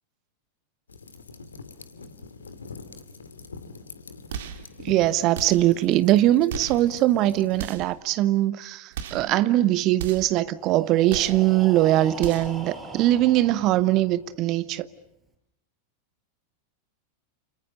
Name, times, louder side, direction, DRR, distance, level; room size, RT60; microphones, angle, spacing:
sound 1, 0.9-7.6, left 4 dB, 75° left, 2.4 m, -43 dB
sound 2, 4.3-4.7 5.3-5.8 6.5-6.9 7.5-8.0 8.9-9.3 10.0-10.4 11.1-11.5 12.2-12.6, right 8 dB, 55° right, 2.4 m, -36 dB
voice 1, 4.8-14.9, right 14 dB, 40° right, 1.0 m, -21 dB
Breathing, 10.5-14.4, right 1 dB, 15° right, 5.8 m, -41 dB
29.5 x 29.0 x 6.8 m
figure-of-eight pair, 90°, 0 cm